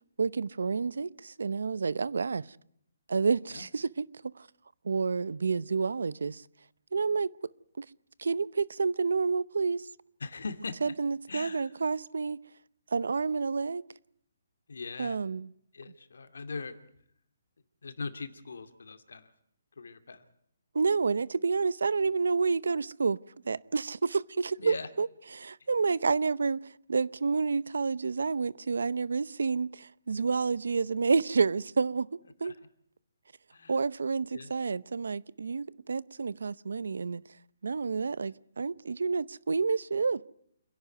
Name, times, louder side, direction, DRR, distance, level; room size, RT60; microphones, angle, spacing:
voice 1, 0.2-2.6 3.1-4.1 4.4-4.5 4.8-6.4 6.9-7.3 7.8-7.9 8.2-9.9 10.8-12.4 12.9-13.8 15.0-15.5 20.7-23.2 23.4-32.5 33.7-37.2 37.6-40.2, right 4 dB, 80° right, 0.8 m, -29 dB
voice 2, 10.2-10.9 11.3-11.7 14.7-15.2 15.7-16.7 17.8-19.3 19.8-20.2 24.6-24.9 32.4-32.5 33.5-33.7 34.3-34.5, left 4 dB, 80° left, 2.5 m, -40 dB
28.5 x 11.0 x 9.3 m
hypercardioid pair, 160°, 0 cm